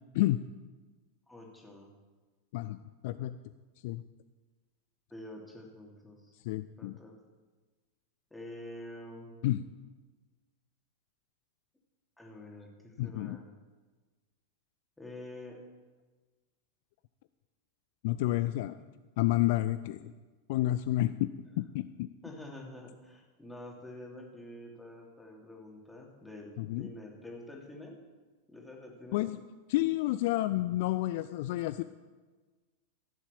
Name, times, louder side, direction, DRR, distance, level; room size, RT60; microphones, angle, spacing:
voice 1, 1.3-1.9 5.1-6.3 6.8-7.2 8.3-9.3 12.2-13.5 15.0-15.6 18.7-18.8 22.2-28.0 28.5-29.2, left 1 dB, 5° left, -1 dB, 2.9 m, -47 dB
voice 2, 3.0-3.4 3.8-4.0 6.4-7.0 9.4-9.6 13.0-13.4 18.0-18.8 19.2-20.1 20.5-21.3 21.6-22.1 26.6-26.9 29.1-29.4 29.7-31.8, left 16 dB, 50° left, 12 dB, 0.4 m, -30 dB
15.0 x 7.2 x 7.0 m, 1.3 s
figure-of-eight pair, 90°, 0 cm